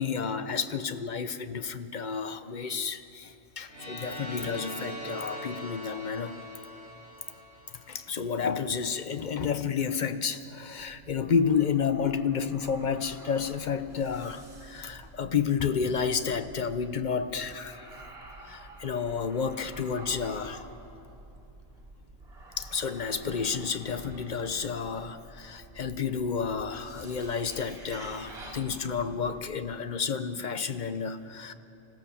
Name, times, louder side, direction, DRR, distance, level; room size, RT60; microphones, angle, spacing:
voice 1, 0.0-6.3 7.9-17.9 18.5-20.7 22.6-31.5, left 6 dB, 45° left, 11 dB, 0.8 m, -31 dB
sound 1, 3.7-8.5, equal, 60° left, 7.3 m, -42 dB
sound 2, 10.8-29.6, right 2 dB, 55° right, 2.5 m, -49 dB
25.5 x 15.5 x 7.1 m, 2.9 s
omnidirectional pair, 1.3 m